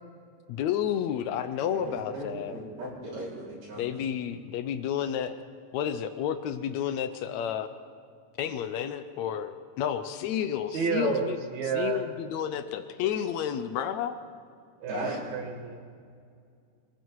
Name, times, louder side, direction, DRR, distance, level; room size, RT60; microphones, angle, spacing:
voice 1, 0.5-2.5 3.8-5.4 5.7-7.7 8.4-11.4 11.7-14.2, left 9 dB, 85° left, 9 dB, 1.5 m, -31 dB
voice 2, 1.7-3.9 14.9-15.4, right 1 dB, 80° right, -8 dB, 6.3 m, -38 dB
voice 3, 10.7-12.0 14.8-15.8, right 5 dB, 55° right, 3 dB, 2.9 m, -30 dB
27.5 x 21.5 x 4.8 m, 2.3 s
omnidirectional pair, 4.3 m